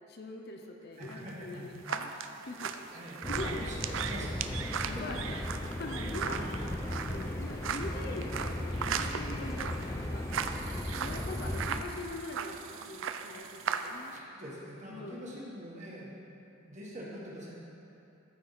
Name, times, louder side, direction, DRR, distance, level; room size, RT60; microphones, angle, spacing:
voice 1, 0.1-3.7 4.8-5.4 5.8-6.4 7.1-10.3 10.9-14.1 14.9-15.2, left 2 dB, 50° left, 2 dB, 0.7 m, -43 dB
voice 2, 1.0-1.7 2.9-4.5 6.1-7.1 14.1-16.2 16.7-17.6, equal, 35° right, -5 dB, 1.6 m, -44 dB
Footsteps in Forest, 1.0-14.2, right 7 dB, 65° right, 0.4 m, -38 dB
sound 1, 3.2-11.8, left 1 dB, 15° left, 0.4 m, -37 dB
13.5 x 4.7 x 4.2 m, 2.8 s
head